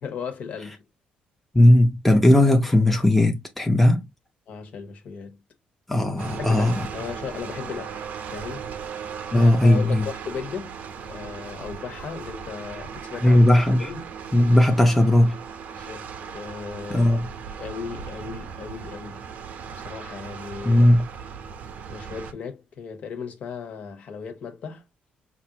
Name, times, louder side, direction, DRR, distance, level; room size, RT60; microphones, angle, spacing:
voice 1, 0.0-0.9 4.5-5.4 6.4-8.7 9.0-10.8 11.0-13.4 13.8-14.1 15.7-17.1 17.6-19.2 19.8-20.9 21.9-24.9, left 6 dB, 55° left, 1.3 m, -36 dB
voice 2, 1.5-4.1 5.9-6.9 9.3-10.1 13.2-13.9 14.3-15.4 16.9-17.3 20.6-21.1, left 1 dB, 5° left, 0.9 m, -17 dB
sound 1, 6.2-22.3, right 6 dB, 60° right, 0.8 m, -37 dB
5.6 x 2.7 x 2.9 m
cardioid pair, 140°, 3 cm